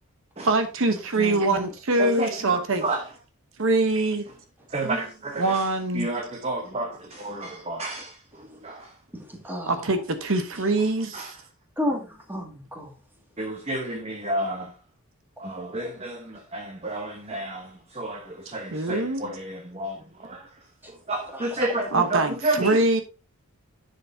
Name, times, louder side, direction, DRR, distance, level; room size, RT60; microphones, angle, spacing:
voice 1, 0.4-2.8 3.6-4.2 5.4-6.1 9.7-11.3 18.7-19.4 21.9-23.0, right 2 dB, 60° right, 1.0 m, -23 dB
voice 2, 1.2-1.7 9.1-9.7 11.8-12.9 15.6-15.9 21.3-21.7, left 1 dB, 10° right, 2.1 m, -32 dB
voice 3, 2.0-3.1 4.7-5.6 5.9-8.2 8.6-8.9 11.1-11.3 13.4-14.7 15.4-20.5 21.1-22.8, right 2 dB, 30° right, 1.0 m, -31 dB
10.5 x 6.7 x 2.7 m
head